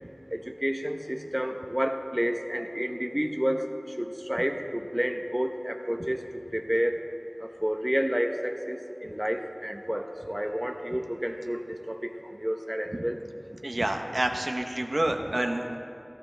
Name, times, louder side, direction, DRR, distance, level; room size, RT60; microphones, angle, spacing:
voice 1, 0.3-3.6 4.0-6.2 6.5-7.0 7.4-13.2, equal, 15° right, 4 dB, 0.8 m, -30 dB
voice 2, 13.6-15.8, right 1 dB, 70° right, 4 dB, 0.8 m, -28 dB
17.0 x 13.0 x 3.3 m, 2.7 s
wide cardioid pair, 40°, 0 cm